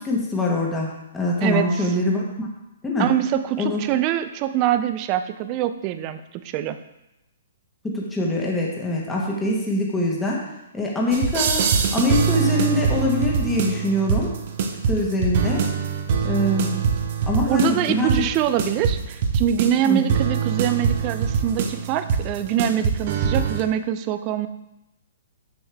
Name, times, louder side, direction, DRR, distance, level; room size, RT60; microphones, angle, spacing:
voice 1, 0.0-2.5 2.8-3.1 3.6-3.8 7.8-10.4 10.7-11.6 11.9-14.3 14.9-15.6 16.2-16.8 17.2-18.2 19.8-20.1, left 1 dB, 10° left, -3 dB, 1.3 m, -23 dB
voice 2, 3.0-6.8 17.5-24.5, right 11 dB, 35° right, 11 dB, 0.5 m, -24 dB
sound 1, 11.1-23.6, right 6 dB, 50° right, 0.8 m, -23 dB
6.7 x 6.2 x 3.4 m, 0.90 s
figure-of-eight pair, 125°, 0 cm